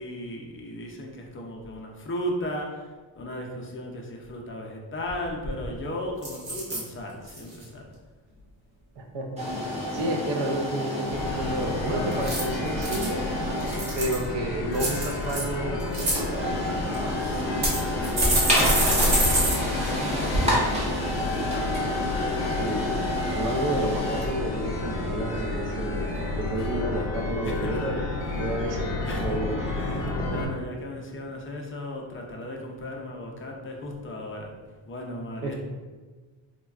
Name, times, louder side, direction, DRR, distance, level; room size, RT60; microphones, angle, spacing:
voice 1, 0.0-7.9 17.2-21.4 26.6-26.7 27.4-27.8 28.2-28.5 29.0-29.4 29.7-34.6 34.8-35.5, left 1 dB, 30° left, 0 dB, 0.4 m, -36 dB
sound 1, 5.1-5.2 5.4-5.8 6.2-6.8 7.3-7.6 12.1-13.1 13.6-14.2 14.7-15.4 15.8-16.2 16.9-17.0 17.6-19.6 19.8-19.9 20.3-20.4, right 1 dB, 50° right, 1.0 m, -25 dB
voice 2, 9.0-9.6 9.9-13.2 13.9-16.1 22.5-23.0 23.3-26.1 26.4-30.5 35.4-35.5, right 1 dB, 65° right, 3 dB, 0.5 m, -31 dB
sound 2, 9.4-26.2, left 1 dB, 15° right, 0.7 m, -30 dB
sound 3, 11.1-30.5, left 2 dB, 60° left, 0.8 m, -31 dB
3.3 x 2.2 x 2.3 m, 1.3 s
cardioid pair, 115°, 48 cm